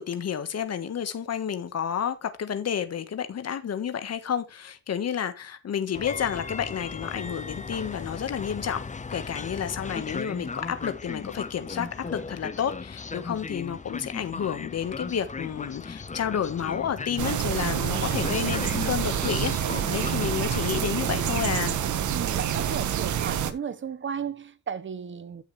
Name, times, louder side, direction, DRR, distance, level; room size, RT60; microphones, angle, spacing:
voice 1, 0.0-8.8 9.1-21.8, left 8 dB, 55° left, 1.4 m, -30 dB
Train, 5.9-21.4, left 4 dB, 25° left, 0.9 m, -37 dB
sound 1, 17.2-23.5, right 9 dB, 75° right, 1.4 m, -27 dB
voice 2, 22.1-25.4, right 7 dB, 40° right, 1.2 m, -34 dB
14.0 x 6.3 x 3.2 m
cardioid pair, 85°, 30 cm